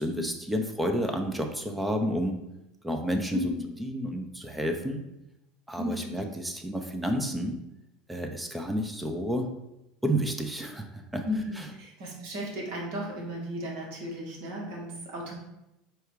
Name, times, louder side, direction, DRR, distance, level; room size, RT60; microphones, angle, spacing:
voice 1, 0.0-2.4 2.8-3.5 3.8-5.0 5.7-7.6 8.1-9.5 10.0-11.2 11.6-11.7, equal, 10° right, 4 dB, 0.6 m, -30 dB
voice 2, 5.8-6.1 11.2-15.3, equal, 70° right, -2 dB, 1.4 m, -34 dB
4.5 x 2.4 x 4.7 m, 0.90 s
hypercardioid pair, 80°, 0 cm